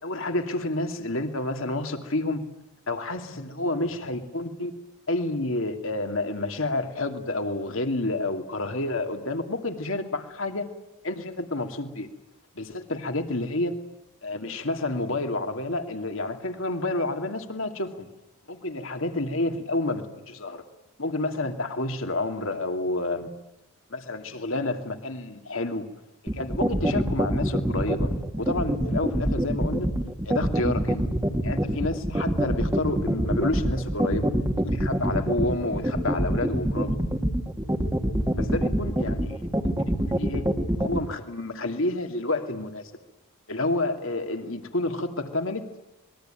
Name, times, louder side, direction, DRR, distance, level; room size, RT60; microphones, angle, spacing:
voice 1, 0.0-2.4 2.9-4.7 5.1-10.7 11.0-12.1 12.5-13.7 14.2-18.1 18.5-20.6 21.0-23.3 23.9-25.8 26.3-28.1 28.4-29.9 30.2-31.0 31.4-34.3 34.6-36.9 38.3-39.5 39.8-40.4 40.8-42.8 43.5-45.7, left 2 dB, 60° left, 5 dB, 2.7 m, -29 dB
sound 1, 26.3-41.0, equal, 15° right, 1.8 m, -24 dB
26.0 x 21.5 x 9.2 m, 0.93 s
head